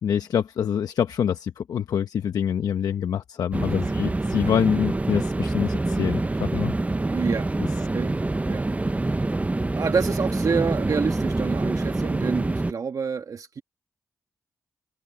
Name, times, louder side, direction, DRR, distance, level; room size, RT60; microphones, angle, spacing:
voice 1, 0.0-6.7, left 8 dB, 80° left, 1.0 m, -25 dB
sound 1, 3.5-12.7, right 2 dB, 20° right, 0.8 m, -26 dB
voice 2, 7.1-7.5 7.8-8.1 8.4-8.7 9.0-9.2 9.7-13.6, right 6 dB, 65° right, 1.6 m, -28 dB
cardioid pair, 55°, 6 cm